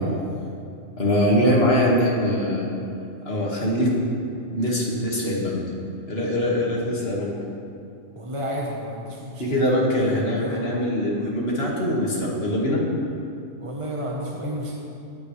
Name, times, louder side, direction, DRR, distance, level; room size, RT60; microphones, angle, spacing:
voice 1, 1.0-2.7 3.2-3.9 4.5-5.6 6.1-7.3 9.4-12.8, equal, 45° left, -4 dB, 2.3 m, -22 dB
voice 2, 8.1-9.4 10.4-10.8 13.6-14.8, equal, 25° right, -3 dB, 1.2 m, -31 dB
21.0 x 8.8 x 3.4 m, 2.6 s
omnidirectional pair, 1.5 m